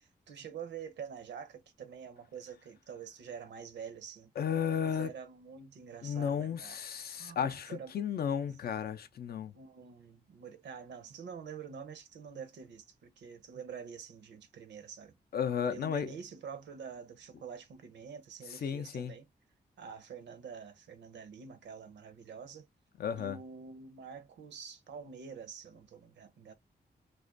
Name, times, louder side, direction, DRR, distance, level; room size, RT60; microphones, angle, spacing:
voice 1, 0.0-4.3 4.9-6.8 7.1-7.9 8.3-8.5 9.5-15.1 15.6-19.3 19.8-22.7 23.1-26.5, right 6 dB, 80° right, 0.6 m, -47 dB
voice 2, 4.4-5.1 6.0-9.5 15.3-16.1 18.6-19.1 23.0-23.4, left 8 dB, 60° left, 0.4 m, -33 dB
2.3 x 2.1 x 2.4 m
cardioid pair, 55°, 18 cm